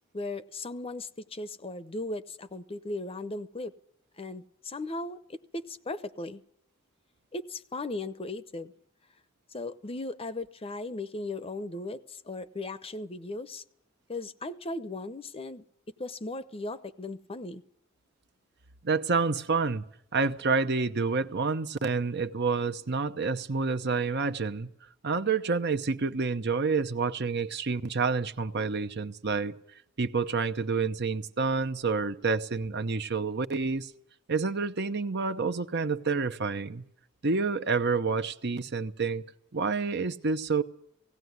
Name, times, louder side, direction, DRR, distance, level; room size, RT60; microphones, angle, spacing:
voice 1, 0.1-3.7 4.2-6.4 7.3-8.7 9.5-13.6 14.1-15.6 16.0-17.6, left 2 dB, 30° left, 0.8 m, -37 dB
voice 2, 18.8-19.8 20.1-24.7 25.0-29.6 30.0-33.9 34.3-36.8 37.2-39.3 39.5-40.6, right 4 dB, 55° right, 0.9 m, -28 dB
17.5 x 17.0 x 9.5 m
head